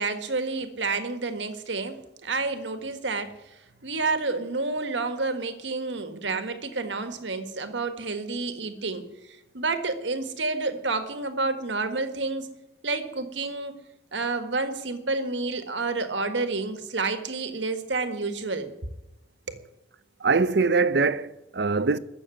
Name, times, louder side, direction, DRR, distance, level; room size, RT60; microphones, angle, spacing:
voice 1, 0.0-12.5 12.8-13.8 14.1-18.7 19.5-19.6, right 3 dB, 80° right, 1.7 m, -29 dB
voice 2, 20.2-22.0, right 4 dB, 60° right, 0.7 m, -23 dB
15.0 x 6.9 x 9.5 m
head